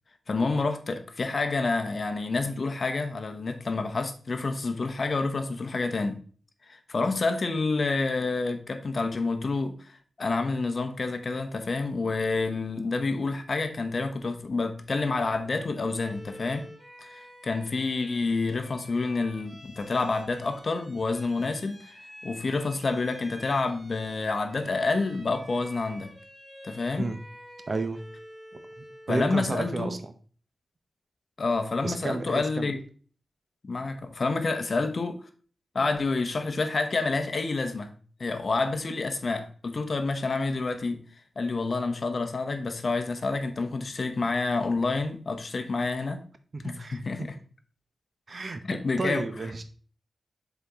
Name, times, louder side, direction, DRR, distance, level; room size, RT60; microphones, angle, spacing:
voice 1, 0.3-6.2 6.7-16.7 17.0-26.1 26.6-27.1 29.1-29.9 31.4-32.8 33.6-35.2 35.7-37.9 38.2-41.0 41.4-46.2 46.6-47.4 48.6-49.3, left 3 dB, 50° left, 0.8 m, -28 dB
Bowed string instrument, 15.9-29.2, equal, 10° right, 2.4 m, -49 dB
voice 2, 27.7-28.0 29.1-30.1 31.8-32.7 46.5-47.3 48.3-48.6 49.0-49.6, right 3 dB, 45° right, 0.7 m, -31 dB
7.2 x 4.1 x 3.5 m
wide cardioid pair, 105°, 0 cm